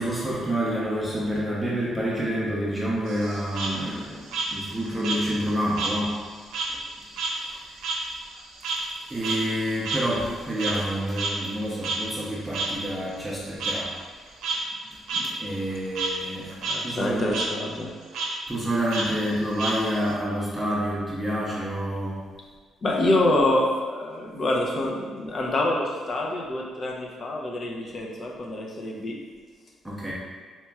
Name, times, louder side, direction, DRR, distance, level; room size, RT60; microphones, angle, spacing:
voice 1, 0.0-6.2 7.4-7.6 9.1-13.9 15.4-16.6 16.8-17.3 18.5-22.2 29.8-30.1, equal, 5° right, -6 dB, 0.7 m, -28 dB
Frog, 3.1-6.0 6.3-10.9 11.2-11.3 11.8-12.0 12.5-12.7 13.6-13.7 14.3-14.6 15.1-15.2 15.6-16.1 16.5-16.8 17.1-17.5 18.1-18.3 18.9-20.1, right 3 dB, 85° right, 0.6 m, -30 dB
voice 2, 16.6-18.0 22.8-29.2, left 1 dB, 45° left, 0 dB, 0.6 m, -26 dB
4.3 x 2.9 x 2.3 m, 1.5 s
cardioid pair, 90°, 0 cm